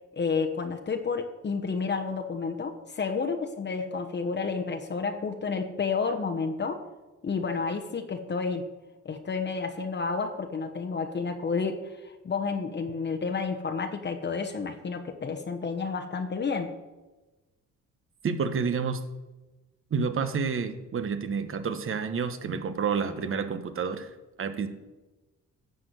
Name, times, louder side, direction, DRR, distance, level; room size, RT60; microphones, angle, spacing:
voice 1, 0.1-6.8 7.2-8.7 9.0-16.7, left 5 dB, 35° left, 4 dB, 1.1 m, -30 dB
voice 2, 18.2-19.0 19.9-24.1 24.4-24.7, right 5 dB, 45° right, 9 dB, 1.2 m, -29 dB
12.0 x 4.6 x 7.9 m, 1.1 s
cardioid pair, 90°, 30 cm